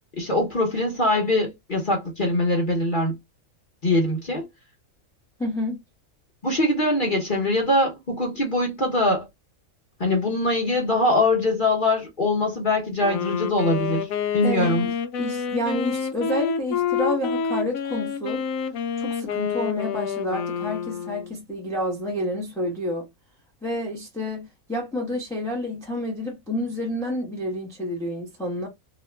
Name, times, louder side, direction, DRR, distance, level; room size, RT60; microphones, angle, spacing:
voice 1, 0.2-3.1 3.8-4.4 6.4-9.3 10.0-14.1 14.3-14.9, left 1 dB, 40° left, 1.0 m, -22 dB
voice 2, 5.4-5.8 14.4-14.7 15.2-18.4 19.0-23.0 23.6-28.7, left 1 dB, 5° left, 0.7 m, -29 dB
Wind instrument woodwind instrument, 13.0-21.3, left 6 dB, 75° left, 1.0 m, -28 dB
2.9 x 2.2 x 3.2 m
omnidirectional pair, 1.5 m